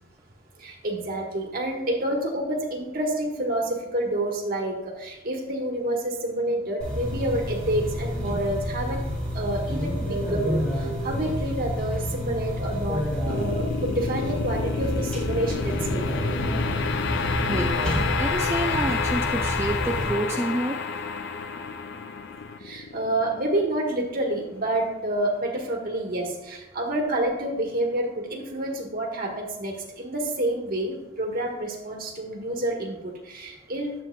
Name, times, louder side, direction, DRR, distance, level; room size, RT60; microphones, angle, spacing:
voice 1, 0.6-9.0 9.3-16.2 22.6-34.0, right 1 dB, 50° right, 1 dB, 1.3 m, -28 dB
sound 1, 6.8-20.1, equal, 5° left, 2.5 m, -29 dB
sound 2, 13.3-24.5, left 5 dB, 60° left, 0.5 m, -30 dB
voice 2, 17.5-17.8 18.2-20.8, right 1 dB, 15° right, 0 dB, 0.4 m, -28 dB
9.8 x 7.4 x 2.2 m, 1.0 s
head